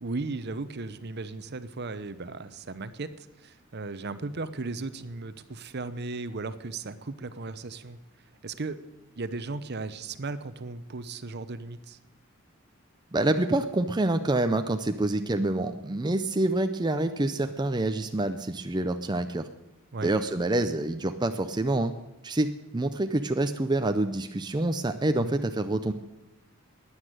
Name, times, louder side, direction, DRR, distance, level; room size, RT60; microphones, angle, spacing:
voice 1, 0.0-8.0 8.4-8.8 9.2-12.0 19.9-20.1 25.1-25.3, right 3 dB, 50° right, 13 dB, 0.8 m, -36 dB
voice 2, 13.1-19.5 20.0-21.9 22.2-25.9, right 2 dB, 20° right, 7 dB, 0.6 m, -27 dB
12.5 x 9.8 x 9.1 m, 0.98 s
head